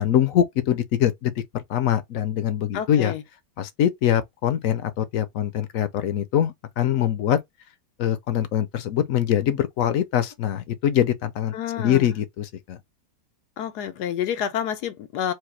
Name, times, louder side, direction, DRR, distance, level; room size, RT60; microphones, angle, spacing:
voice 1, 0.0-3.1 3.6-7.4 8.0-12.8, left 10 dB, 65° left, 1.0 m, -23 dB
voice 2, 2.7-3.2 11.5-12.1 13.6-15.3, left 9 dB, 85° left, 1.2 m, -28 dB
4.8 x 2.2 x 4.5 m
omnidirectional pair, 1.7 m